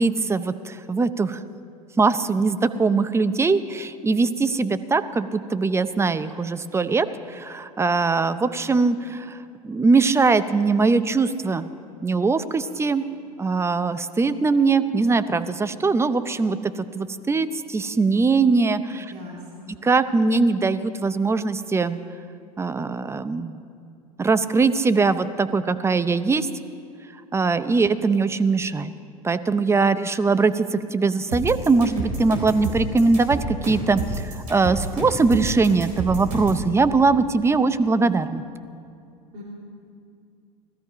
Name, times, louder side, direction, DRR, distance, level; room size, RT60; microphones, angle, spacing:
voice 1, 0.0-1.4 2.0-9.4 9.6-11.7 12.0-13.0 13.4-19.1 19.8-22.0 22.6-23.6 24.2-26.5 27.3-28.9 29.2-38.4, right 4 dB, 15° right, 12 dB, 0.6 m, -21 dB
voice 2, 19.1-19.7 39.3-39.4, left 2 dB, 55° right, -3 dB, 3.1 m, -40 dB
sound 1, 31.3-36.6, right 3 dB, 75° right, 4.1 m, -29 dB
18.0 x 13.0 x 5.0 m, 2.4 s
hypercardioid pair, 85°, 19 cm